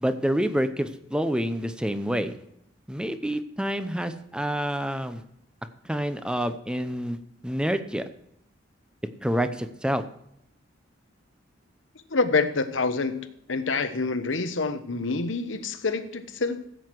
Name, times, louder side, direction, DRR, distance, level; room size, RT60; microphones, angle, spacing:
voice 1, 0.0-2.4 2.9-5.2 5.8-7.2 7.4-8.0 9.2-10.0, equal, 5° right, 10 dB, 0.7 m, -27 dB
voice 2, 12.1-16.6, left 3 dB, 80° left, 9 dB, 1.1 m, -27 dB
15.5 x 8.0 x 4.7 m, 0.76 s
head